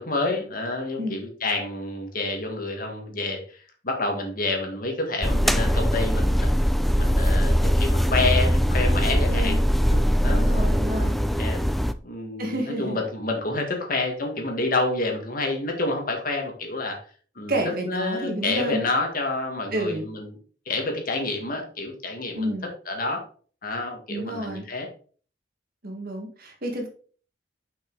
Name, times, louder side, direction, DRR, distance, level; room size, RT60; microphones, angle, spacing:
voice 1, 0.0-6.5 7.0-9.6 9.9-10.6 11.4-11.6 12.0-17.0 17.4-17.6 17.9-20.4 20.7-22.6 22.9-23.2 23.6-24.9, left 2 dB, 50° left, 2 dB, 2.0 m, -28 dB
sound 1, 5.2-11.9, equal, ahead, 0.3 m, -21 dB
voice 2, 10.3-11.2 12.4-13.0 17.5-18.8 19.7-20.1 22.3-22.6 24.1-24.6 25.8-26.9, right 1 dB, 55° right, 3 dB, 1.9 m, -29 dB
6.2 x 5.9 x 4.0 m, 0.42 s
head